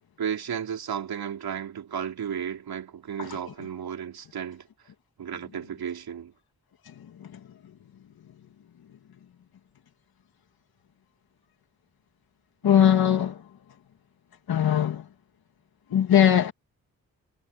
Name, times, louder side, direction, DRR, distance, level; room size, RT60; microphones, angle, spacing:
voice 1, 0.2-4.6 5.2-6.3, right 8 dB, 90° right, 3.2 m, -33 dB
voice 2, 12.6-13.4 14.5-15.0 15.9-16.5, left 9 dB, 85° left, 2.0 m, -20 dB
cardioid pair, 50°, 36 cm